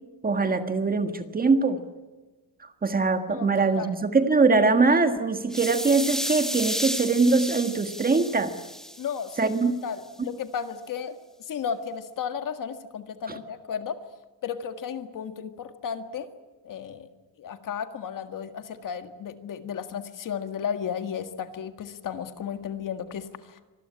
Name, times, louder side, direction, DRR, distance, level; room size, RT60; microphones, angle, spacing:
voice 1, 0.2-1.8 2.8-8.5 9.4-9.7 10.2-10.3 13.3-13.4, right 4 dB, 20° right, 8 dB, 1.6 m, -22 dB
sound 1, 5.5-9.6, equal, ahead, 1.8 m, -33 dB
voice 2, 9.0-9.4 9.8-11.2 11.5-14.0 14.4-16.3 16.6-17.1 17.4-23.6, left 7 dB, 45° left, 9 dB, 1.8 m, -34 dB
25.5 x 20.5 x 9.9 m, 1.2 s
cardioid pair, 180°, 44 cm